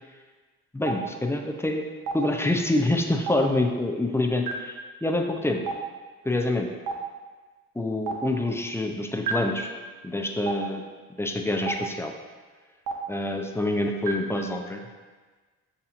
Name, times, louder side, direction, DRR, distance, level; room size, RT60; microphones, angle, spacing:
voice 1, 0.7-1.8 2.1-5.6 6.2-6.7 7.8-9.7 10.0-10.8 11.2-12.1 13.1-14.8, left 1 dB, 5° left, 2 dB, 0.4 m, -26 dB
Stream, 0.9-1.0 2.1-2.2 3.3-3.4 4.5-4.6 5.7-5.8 6.9-7.0 8.1-8.2 9.3-9.4 10.5-10.6 11.7-11.8 12.9-13.0 14.1-14.2, right 6 dB, 65° right, 0.7 m, -27 dB
6.8 x 2.8 x 2.5 m, 1.4 s
supercardioid pair, 55°, 36 cm